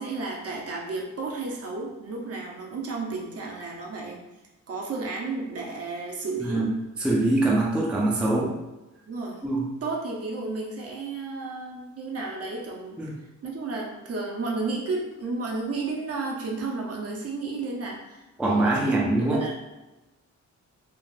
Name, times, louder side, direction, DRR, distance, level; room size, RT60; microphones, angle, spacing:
voice 1, 0.0-4.2 4.7-6.7 9.1-9.4 9.8-13.0 13.4-19.5, right 3 dB, 50° right, -1 dB, 0.6 m, -32 dB
voice 2, 6.4-6.7 7.0-8.6 9.4-9.7 13.0-13.1 18.4-19.4, right 2 dB, 5° right, -4 dB, 0.4 m, -23 dB
3.4 x 2.4 x 2.3 m, 1.1 s
wide cardioid pair, 140°, 31 cm